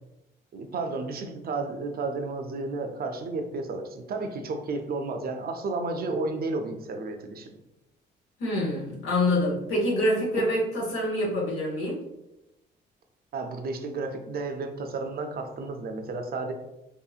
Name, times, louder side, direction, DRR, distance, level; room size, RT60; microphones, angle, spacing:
voice 1, 0.5-7.5 10.4-10.5 13.3-16.5, right 3 dB, 50° right, 5 dB, 0.5 m, -32 dB
voice 2, 8.4-12.0, left 1 dB, 80° left, -4 dB, 0.9 m, -26 dB
2.7 x 2.6 x 2.4 m, 0.91 s
cardioid pair, 90°, 20 cm